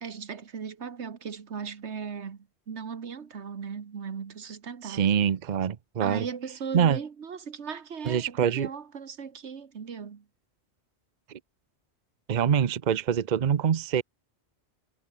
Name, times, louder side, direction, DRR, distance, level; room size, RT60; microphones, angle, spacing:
voice 1, 0.0-5.1 6.0-10.2, right 6 dB, 90° right, 1.7 m, -38 dB
voice 2, 4.8-6.3 6.7-7.0 8.1-8.7 12.3-14.0, right 8 dB, 45° right, 0.8 m, -25 dB
omnidirectional pair, 1.1 m